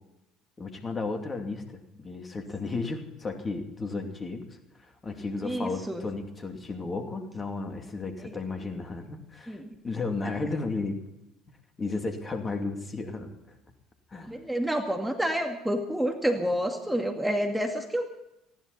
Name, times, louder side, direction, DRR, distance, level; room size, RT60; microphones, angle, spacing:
voice 1, 0.6-4.5 5.0-9.6 9.8-11.0 11.8-13.3 14.1-14.4, left 3 dB, 25° left, 5 dB, 2.7 m, -33 dB
voice 2, 5.4-6.1 8.2-8.3 9.5-9.7 14.3-18.1, equal, 5° right, 3 dB, 2.1 m, -29 dB
20.0 x 16.0 x 4.2 m, 0.87 s
figure-of-eight pair, 60°, 0 cm